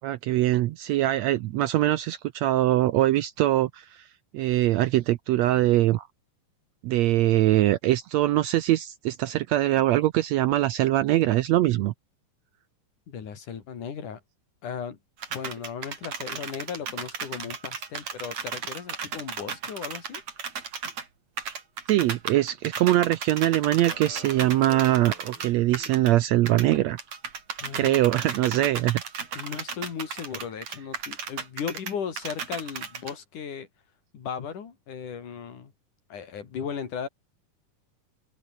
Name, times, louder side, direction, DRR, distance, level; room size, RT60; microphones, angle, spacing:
voice 1, 0.0-4.0 4.3-6.1 6.8-11.9 21.9-27.0 27.8-29.0, right 15 dB, 75° right, 1.7 m, -22 dB
voice 2, 13.1-14.2 14.6-15.0 15.3-20.2 27.6-28.0 29.3-33.7 34.1-35.7 36.1-37.1, left 7 dB, 70° left, 4.5 m, -36 dB
sound 1, 15.2-21.0 21.4-26.1 26.5-33.1, right 6 dB, 55° right, 4.4 m, -35 dB
sound 2, 23.8-26.0, right 2 dB, 40° right, 7.9 m, -46 dB
open air
omnidirectional pair, 3.7 m